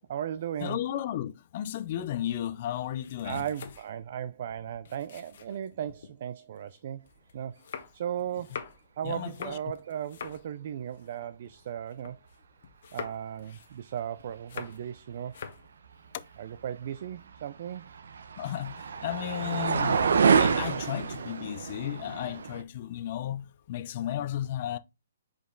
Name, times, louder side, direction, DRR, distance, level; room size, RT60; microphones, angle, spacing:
voice 1, 0.1-0.8 3.2-7.1 7.3-7.6 7.9-8.6 9.0-12.2 12.9-15.4 16.4-17.9, right 10 dB, 40° right, 0.4 m, -36 dB
voice 2, 0.6-3.4 9.0-9.6 16.1-16.2 18.4-24.8, left 11 dB, 35° left, 0.6 m, -34 dB
sound 1, 2.2-6.1 6.6-12.4 12.6-15.0 15.2-15.7, left 7 dB, 50° left, 1.2 m, -45 dB
sound 2, 17.3-22.6, right 6 dB, 75° right, 0.8 m, -27 dB
5.1 x 5.0 x 3.9 m
hypercardioid pair, 170°, 0 cm